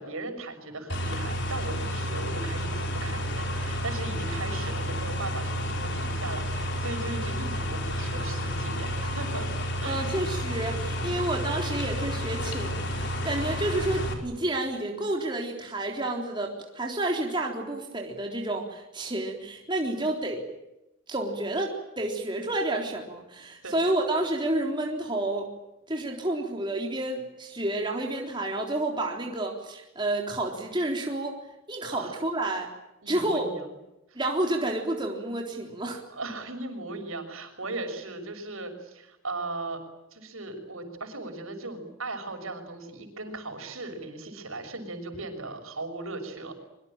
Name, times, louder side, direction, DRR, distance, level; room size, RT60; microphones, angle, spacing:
voice 1, 0.0-9.5 9.8-10.0 10.8-11.1 23.6-23.8 31.9-32.2 33.0-33.7 34.1-34.2 36.1-39.8 40.1-46.6, right 2 dB, 85° right, 6 dB, 6.3 m, -38 dB
sound 1, 0.9-14.1, equal, 55° left, 4.7 m, -31 dB
voice 2, 9.9-20.4 21.1-25.5 25.9-31.4 31.7-32.7 33.1-33.5 34.2-36.0, right 1 dB, 20° right, 1 dB, 3.8 m, -30 dB
24.0 x 24.0 x 9.0 m, 0.91 s
head